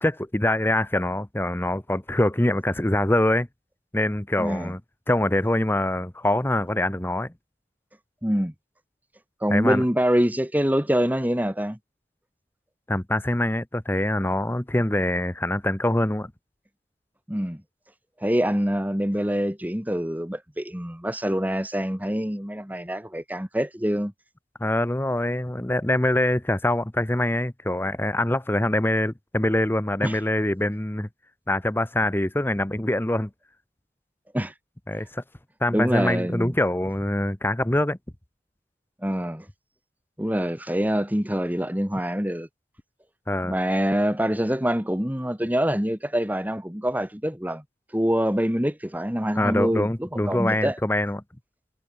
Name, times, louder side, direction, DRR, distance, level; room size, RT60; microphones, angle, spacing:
voice 1, 0.0-3.5 3.9-4.8 5.1-7.3 9.5-9.8 12.9-16.3 24.6-31.1 31.5-33.3 34.9-35.2 35.6-38.0 43.3-43.6 49.4-51.2, left 1 dB, 10° left, 0.9 m, -24 dB
voice 2, 4.4-4.7 8.2-8.5 9.4-11.8 17.3-17.6 18.2-24.1 30.0-30.2 34.3-34.5 35.7-36.5 39.0-39.5 40.2-42.5 43.5-47.6 47.9-50.8, equal, 10° right, 1.9 m, -25 dB
head